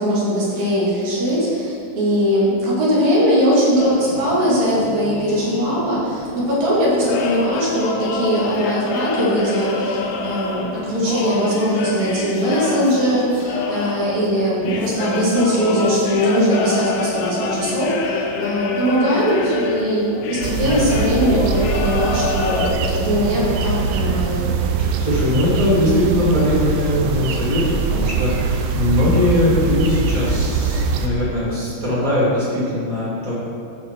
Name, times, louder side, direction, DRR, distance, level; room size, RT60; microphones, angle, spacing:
voice 1, 0.0-24.5, equal, 55° right, -7 dB, 3.5 m, -20 dB
sound 1, 3.8-22.7, left 4 dB, 75° left, 1.9 m, -27 dB
sound 2, 20.4-31.1, right 4 dB, 75° right, 2.0 m, -22 dB
voice 2, 24.8-33.3, left 1 dB, 25° right, -8 dB, 2.6 m, -20 dB
14.0 x 5.2 x 4.5 m, 2.5 s
omnidirectional pair, 4.0 m